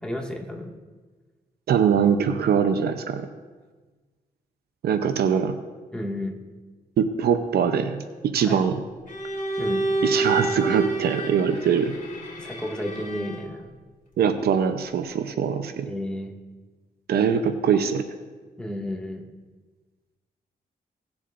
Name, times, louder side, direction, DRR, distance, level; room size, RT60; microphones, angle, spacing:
voice 1, 0.0-0.7 5.9-6.4 8.4-8.7 9.6-9.9 12.4-13.7 15.9-16.3 18.6-19.3, left 1 dB, 5° left, -1 dB, 2.0 m, -32 dB
voice 2, 1.7-3.3 4.8-5.5 7.0-8.8 10.0-11.9 14.2-15.9 17.1-18.0, right 7 dB, 85° right, 8 dB, 0.7 m, -22 dB
Bowed string instrument, 9.1-13.6, right 2 dB, 55° left, 3.0 m, -29 dB
18.5 x 7.2 x 2.6 m, 1.3 s
cardioid pair, 65°, 16 cm